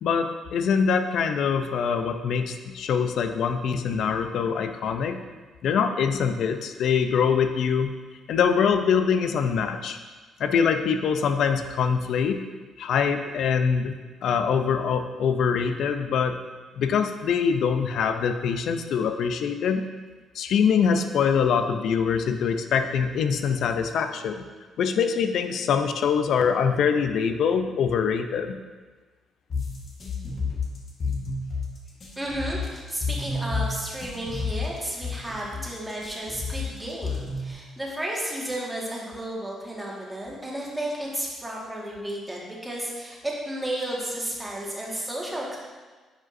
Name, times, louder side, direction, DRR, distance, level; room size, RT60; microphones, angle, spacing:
voice 1, 0.0-5.2 5.6-7.9 8.3-10.0 10.4-12.4 12.8-13.9 14.2-16.4 16.8-19.8 20.3-24.4 24.8-28.6, left 6 dB, 75° left, 8 dB, 0.5 m, -24 dB
sound 1, 29.5-37.5, left 4 dB, 50° left, 1.4 m, -30 dB
voice 2, 32.2-45.6, right 1 dB, 10° right, -4 dB, 1.7 m, -33 dB
9.8 x 5.1 x 2.6 m, 1.3 s
cardioid pair, 90°, 0 cm